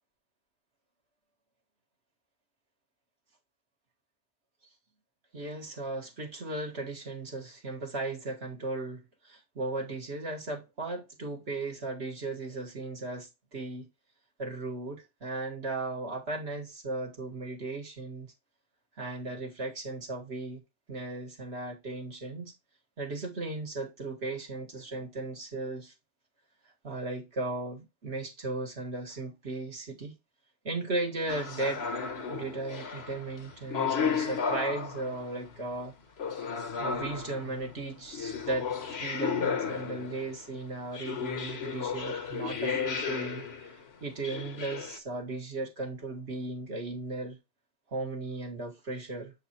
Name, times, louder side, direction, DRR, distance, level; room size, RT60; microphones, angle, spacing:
voice 1, 5.3-13.9 14.4-18.3 19.0-20.6 20.9-22.6 23.0-25.9 26.8-30.1 30.6-31.8 32.3-35.9 36.8-47.4 47.9-49.3, right 2 dB, 60° right, 1.9 m, -36 dB
sound 1, 31.3-35.5 36.2-40.4 40.9-43.8 44.2-45.0, left 6 dB, 60° left, 1.3 m, -34 dB
7.4 x 4.6 x 2.9 m
omnidirectional pair, 1.2 m